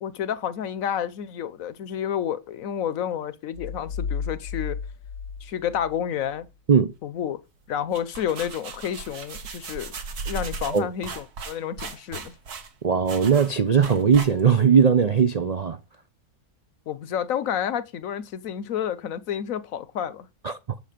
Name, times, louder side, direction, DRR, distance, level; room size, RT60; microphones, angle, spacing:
voice 1, 0.0-4.8 5.4-6.5 7.0-7.4 7.7-9.9 10.3-12.3 16.9-20.3, left 9 dB, 65° left, 1.1 m, -30 dB
sound 1, 3.5-6.5, left 6 dB, 85° left, 1.6 m, -33 dB
sound 2, 7.7-14.7, right 4 dB, 85° right, 1.9 m, -37 dB
voice 2, 12.8-15.8 20.4-20.5, right 6 dB, 60° right, 0.4 m, -19 dB
8.3 x 7.3 x 5.1 m
omnidirectional pair, 1.6 m